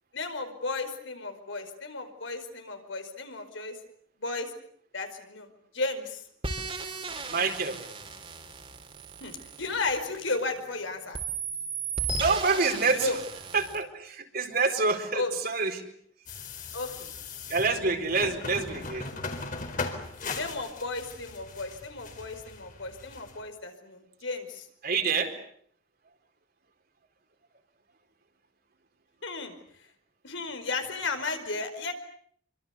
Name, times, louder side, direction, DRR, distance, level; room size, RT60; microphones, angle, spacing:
voice 1, 0.1-3.8 4.2-4.5 4.9-5.5 5.7-6.3 9.2-11.2 12.9-13.2 15.1-15.4 16.7-17.1 20.3-24.7 29.2-29.6 30.2-31.9, left 3 dB, 65° left, 6 dB, 5.0 m, -34 dB
sound 1, 6.4-10.7 11.1-13.8, right 4 dB, 30° right, 3.7 m, -36 dB
voice 2, 7.3-7.8 12.2-13.1 13.5-15.8 17.5-19.1 24.8-25.3, right 4 dB, 50° right, 5 dB, 4.3 m, -27 dB
sound 2, 16.3-23.4, left 3 dB, 40° left, 4.2 m, -39 dB
27.5 x 25.0 x 8.3 m, 0.64 s
head